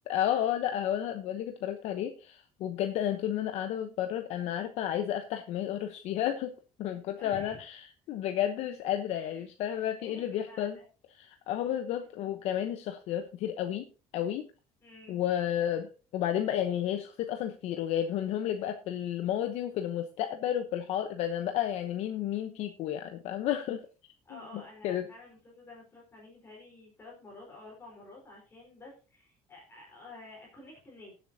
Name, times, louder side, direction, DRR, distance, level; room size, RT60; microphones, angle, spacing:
voice 1, 0.1-6.5 6.8-10.8 11.2-13.9 14.1-14.5 15.1-23.8 24.8-25.1, left 11 dB, 60° left, 7 dB, 0.9 m, -32 dB
voice 2, 7.2-7.6 9.1-10.9 14.8-15.2 24.2-31.2, left 2 dB, 20° left, -2 dB, 4.1 m, -50 dB
18.5 x 7.8 x 2.8 m, 0.33 s
cardioid pair, 175°, 12 cm